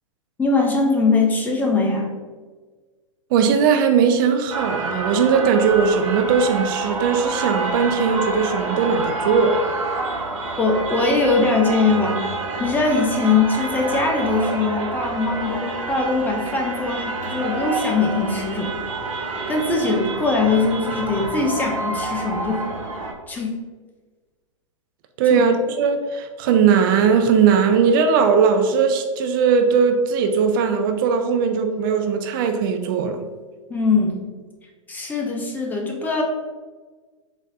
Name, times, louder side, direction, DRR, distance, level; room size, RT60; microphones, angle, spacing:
voice 1, 0.4-2.1 10.6-12.3 12.6-18.8 19.5-22.6 23.3-23.5 25.3-25.5 33.7-34.2 34.9-36.2, left 3 dB, 10° left, 0 dB, 0.6 m, -21 dB
voice 2, 3.3-9.6 25.2-33.2, right 6 dB, 40° right, 6 dB, 0.4 m, -19 dB
sound 1, 4.5-23.1, right 3 dB, 75° right, 0.7 m, -28 dB
4.1 x 3.1 x 2.6 m, 1.4 s
figure-of-eight pair, 110°, 17 cm